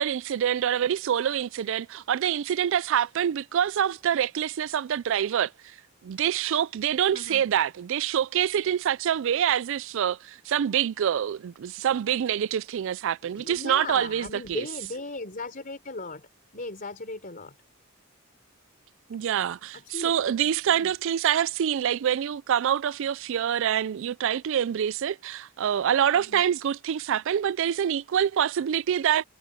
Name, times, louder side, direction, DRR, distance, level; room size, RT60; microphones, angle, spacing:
voice 1, 0.0-5.5 6.0-14.7 19.1-29.3, right 9 dB, 65° right, 0.3 m, -26 dB
voice 2, 7.1-7.5 13.2-16.3 16.5-17.6 19.7-20.2 20.7-20.9 26.1-26.5, left 3 dB, 45° left, 4.3 m, -37 dB
head